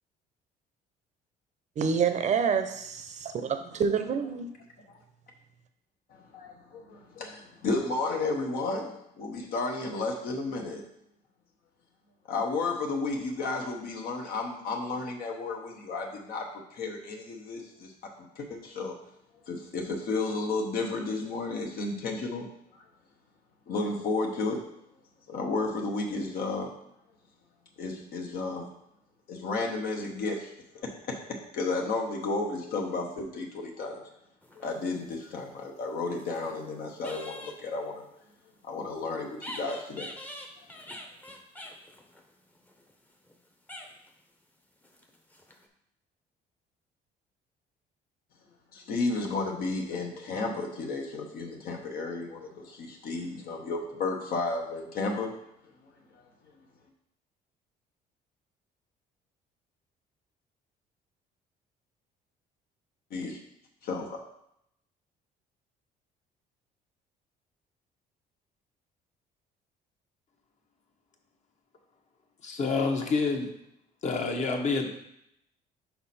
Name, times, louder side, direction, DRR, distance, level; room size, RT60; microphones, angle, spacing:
voice 1, 1.8-4.6, right 6 dB, 45° right, 9 dB, 0.7 m, -28 dB
voice 2, 6.1-10.8 12.3-16.5 16.7-18.9 19.5-22.5 22.7-22.8 23.7-24.6 25.3-26.7 27.8-28.7 29.3-34.0 34.5-38.0 38.6-40.1 48.7-55.3 63.1-63.4 63.8-64.2, left 3 dB, 65° left, 1 dB, 0.9 m, -33 dB
sound 1, 34.4-35.2 35.9-36.6 37.0-37.6 39.3-43.4 43.7-44.2 44.8-45.7, left 1 dB, 10° left, 0.7 m, -45 dB
voice 3, 72.4-73.5 74.0-75.0, left 4 dB, 45° left, 3 dB, 1.0 m, -28 dB
5.8 x 4.2 x 4.2 m, 0.77 s
cardioid pair, 110°, 17 cm